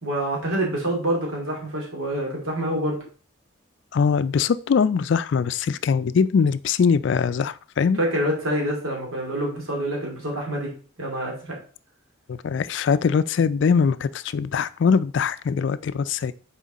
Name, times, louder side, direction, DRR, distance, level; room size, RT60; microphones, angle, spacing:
voice 1, 0.0-3.0 8.0-10.7 11.0-11.6, right 1 dB, 85° right, 2.5 m, -26 dB
voice 2, 3.9-8.0 12.3-16.3, left 6 dB, 60° left, 0.3 m, -22 dB
6.3 x 4.4 x 4.0 m
head